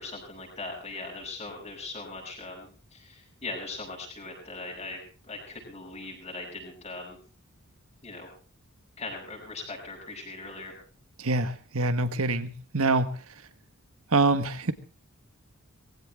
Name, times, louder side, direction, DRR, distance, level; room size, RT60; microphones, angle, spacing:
voice 1, 0.0-7.2 8.0-8.3 9.0-10.7, left 3 dB, 30° left, 0 dB, 7.6 m, -40 dB
voice 2, 11.2-13.2 14.1-14.7, right 3 dB, 70° right, 10 dB, 1.5 m, -25 dB
21.0 x 16.5 x 3.7 m, 0.37 s
head